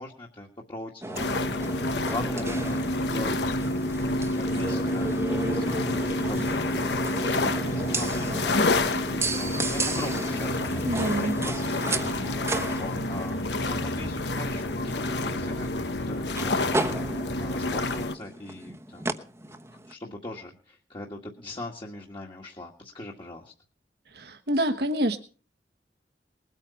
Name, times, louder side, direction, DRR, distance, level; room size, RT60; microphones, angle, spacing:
voice 1, 0.0-1.4 1.7-3.6 4.2-6.8 7.1-19.2 19.5-19.6 19.9-23.5, left 1 dB, 30° left, -1 dB, 1.9 m, -40 dB
sound 1, 1.0-19.9, right 2 dB, 15° right, 1.1 m, -35 dB
sound 2, 1.1-18.1, left 2 dB, 75° left, 1.1 m, -28 dB
voice 2, 10.8-11.4 24.1-25.2, right 1 dB, 65° right, 6 dB, 1.3 m, -26 dB
21.0 x 9.1 x 5.8 m, 0.39 s
head